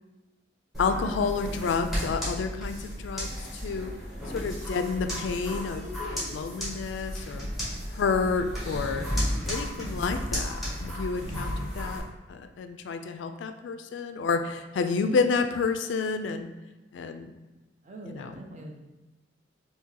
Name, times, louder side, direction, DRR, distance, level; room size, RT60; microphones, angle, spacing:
sound 1, 0.7-12.0, equal, ahead, 1.3 m, -33 dB
voice 1, 0.8-3.9 4.3-7.5 7.9-9.1 9.5-12.0 12.3-16.5 16.9-17.3 18.1-18.3, left 5 dB, 75° left, 8 dB, 0.3 m, -30 dB
voice 2, 17.8-18.8, right 1 dB, 40° right, 1 dB, 0.5 m, -43 dB
2.8 x 2.7 x 3.7 m, 1.1 s
head